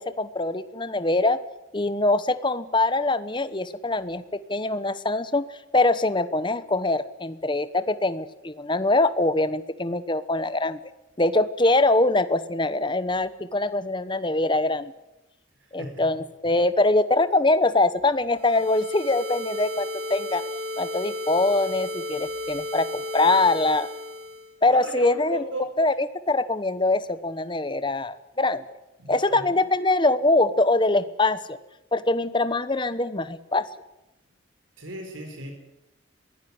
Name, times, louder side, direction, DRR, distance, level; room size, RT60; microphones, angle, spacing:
voice 1, 0.0-1.4 1.7-4.2 4.5-5.4 5.7-10.8 11.2-14.9 15.7-20.4 20.8-23.9 24.6-25.4 25.8-28.6 29.1-31.6 31.9-33.7, left 2 dB, 25° left, 13 dB, 1.0 m, -23 dB
sound 1, 18.4-24.5, left 1 dB, 50° right, 4.2 m, -33 dB
voice 2, 24.7-25.7 29.0-29.6 34.8-35.5, right 1 dB, 75° right, 5 dB, 4.4 m, -36 dB
22.0 x 16.5 x 9.7 m, 0.94 s
head